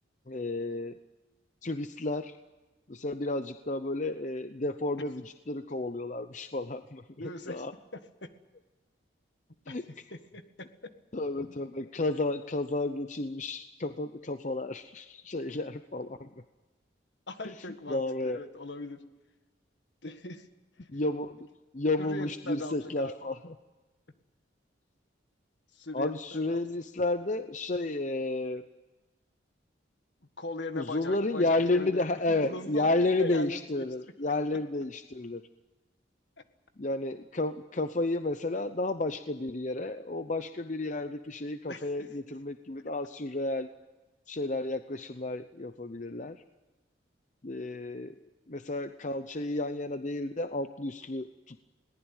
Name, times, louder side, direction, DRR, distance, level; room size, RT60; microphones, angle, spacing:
voice 1, 0.3-1.0 1.6-2.4 2.9-7.0 7.5-7.7 9.7-9.9 11.1-16.3 17.9-18.4 20.9-21.5 21.7-23.5 25.9-28.6 30.7-35.4 36.8-43.7 44.3-46.4 47.4-48.2 48.5-51.6, left 2 dB, 40° left, 9 dB, 0.7 m, -32 dB
voice 2, 7.2-7.6 7.9-8.3 9.7-9.8 10.1-10.7 17.3-18.0 18.3-19.0 20.0-20.5 20.8-20.9 22.0-23.2 25.7-26.6 30.4-32.9 33.2-33.9 41.7-41.9, left 2 dB, 65° left, 8 dB, 1.8 m, -39 dB
21.5 x 19.0 x 9.0 m, 1.2 s
head